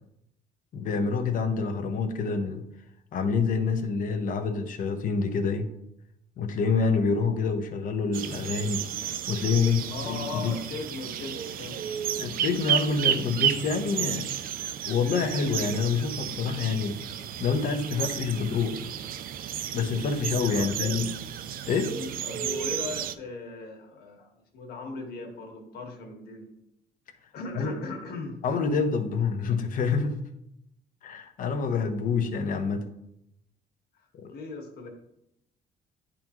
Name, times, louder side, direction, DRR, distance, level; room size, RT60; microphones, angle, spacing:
voice 1, 0.7-2.6 3.1-5.7 6.4-8.9 9.3-10.6 12.2-14.3 14.9-17.1 17.4-18.8 19.7-21.2 21.7-22.0 27.6-27.8 28.4-30.2 31.0-32.8 34.1-34.3, left 5 dB, 55° left, 6 dB, 0.9 m, -27 dB
sound 1, 8.1-23.1, right 10 dB, 60° right, 0.4 m, -32 dB
voice 2, 9.9-11.8 20.5-21.0 21.8-26.5 27.3-28.4 33.9-34.9, left 3 dB, 70° left, 2 dB, 1.6 m, -38 dB
10.0 x 3.7 x 3.0 m, 0.81 s
cardioid pair, 110°, 17 cm